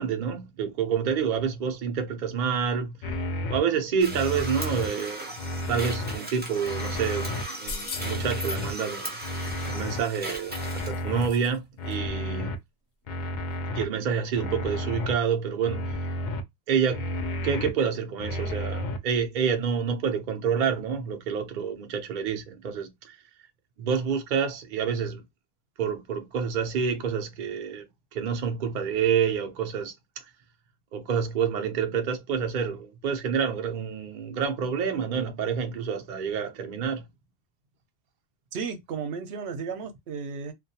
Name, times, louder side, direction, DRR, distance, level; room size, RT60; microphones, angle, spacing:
voice 1, 0.0-3.2 3.5-5.3 5.7-9.2 9.7-12.5 13.7-16.0 16.7-17.1 17.4-23.2 23.8-25.2 25.8-27.9 28.1-29.9 30.9-37.0, right 7 dB, 55° right, 0.6 m, -28 dB
sound 1, 3.0-3.6 4.1-4.9 5.4-6.1 6.6-7.4 7.9-8.7 9.2-10.0 10.5-11.3 11.8-12.6 13.1-13.8 14.3-15.1 15.6-16.4 16.9-17.7 18.2-19.0, left 1 dB, 55° left, 0.6 m, -32 dB
sound 2, 4.0-10.9, right 1 dB, 15° right, 0.5 m, -37 dB
sound 3, 7.6-8.3 9.8-11.6 11.9-12.0, left 4 dB, 85° left, 0.9 m, -41 dB
voice 2, 38.5-40.5, right 5 dB, 85° right, 0.8 m, -34 dB
2.3 x 2.3 x 2.7 m
omnidirectional pair, 1.1 m